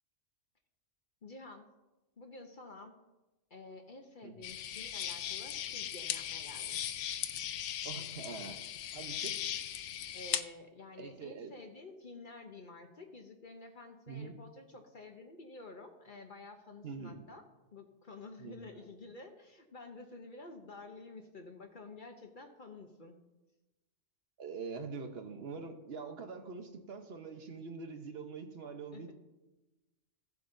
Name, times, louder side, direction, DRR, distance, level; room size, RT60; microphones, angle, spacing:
voice 1, 1.2-1.7 2.2-3.0 3.5-6.8 8.0-8.2 9.4-9.6 9.9-17.4 17.7-23.2 28.9-29.1, left 3 dB, 45° left, 5 dB, 0.9 m, -51 dB
sound 1, 4.4-10.4, left 11 dB, 85° left, 1.0 m, -38 dB
voice 2, 7.8-8.6 8.9-9.4 11.0-11.6 14.1-14.3 16.8-17.3 18.4-18.9 24.4-29.1, right 5 dB, 55° right, 6 dB, 1.2 m, -44 dB
16.0 x 7.8 x 2.7 m, 1.1 s
omnidirectional pair, 1.3 m